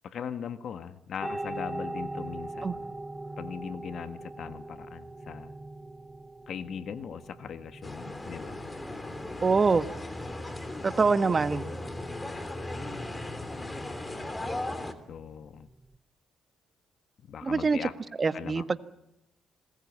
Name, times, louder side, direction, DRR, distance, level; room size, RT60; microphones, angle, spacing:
voice 1, 0.0-2.8 3.4-5.5 6.5-8.6 15.1-15.7 17.3-17.9 18.3-18.6, left 7 dB, 60° left, 10 dB, 1.5 m, -39 dB
sound 1, 1.2-16.0, right 2 dB, 10° right, 0.9 m, -43 dB
sound 2, 7.8-14.9, left 1 dB, 15° left, 3.1 m, -37 dB
voice 2, 9.4-9.9 10.8-11.6 17.4-17.8 18.2-18.8, right 4 dB, 35° right, 11 dB, 1.5 m, -24 dB
27.0 x 20.5 x 8.7 m, 0.84 s
cardioid pair, 90°, 0 cm